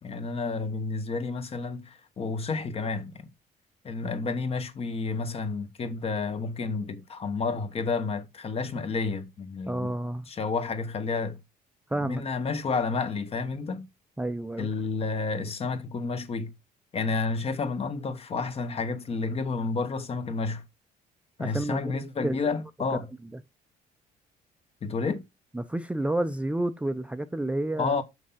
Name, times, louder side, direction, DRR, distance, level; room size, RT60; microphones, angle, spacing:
voice 1, 0.0-3.3 3.8-9.9 10.3-11.4 12.0-13.9 14.6-16.5 16.9-20.6 21.4-23.1 24.8-25.2 27.8-28.0, left 4 dB, 35° left, 1.1 m, -30 dB
voice 2, 9.7-10.3 11.9-12.2 14.2-14.7 21.4-22.4 25.5-27.9, right 1 dB, 5° right, 0.6 m, -30 dB
6.3 x 5.6 x 5.6 m
cardioid pair, 110°, 17 cm